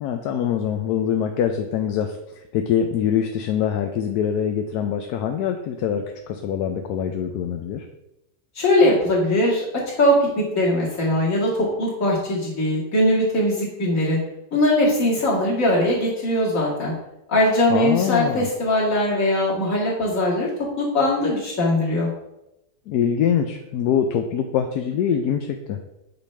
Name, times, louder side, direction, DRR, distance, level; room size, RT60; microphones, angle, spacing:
voice 1, 0.0-7.9 17.7-18.5 22.9-25.8, left 8 dB, 70° left, 5 dB, 1.1 m, -24 dB
voice 2, 8.6-14.2 14.5-16.9 17.3-22.1, left 1 dB, 50° left, -4 dB, 2.4 m, -21 dB
8.4 x 5.0 x 3.3 m, 0.88 s
omnidirectional pair, 1.8 m